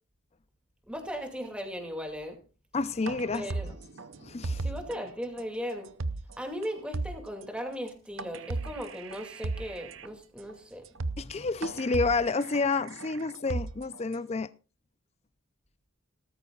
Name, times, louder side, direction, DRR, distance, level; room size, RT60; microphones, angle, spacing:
voice 1, 0.9-2.4 3.3-3.7 4.5-5.9 6.4-10.9, equal, 5° right, 2.3 m, -37 dB
voice 2, 2.7-3.5 4.2-4.7 11.2-14.5, left 3 dB, 30° left, 0.5 m, -29 dB
sound 1, 3.0-5.0 5.4-5.5 5.8-6.3 6.6-6.7 6.9-7.4 8.2-10.1 10.5-10.6 10.8-11.3 11.6-14.1, right 3 dB, 60° right, 0.7 m, -36 dB
18.0 x 14.0 x 2.4 m
head